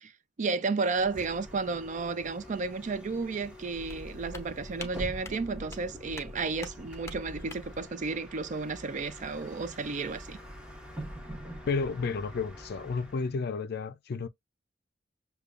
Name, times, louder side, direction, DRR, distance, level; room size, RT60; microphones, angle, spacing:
voice 1, 0.4-10.4, right 4 dB, 40° right, 0.4 m, -32 dB
Bus, 0.9-13.3, equal, 5° right, 1.0 m, -46 dB
sound 1, 3.7-7.8, left 1 dB, 15° left, 0.7 m, -45 dB
voice 2, 11.7-14.3, left 4 dB, 60° left, 0.4 m, -32 dB
6.8 x 2.3 x 2.4 m
head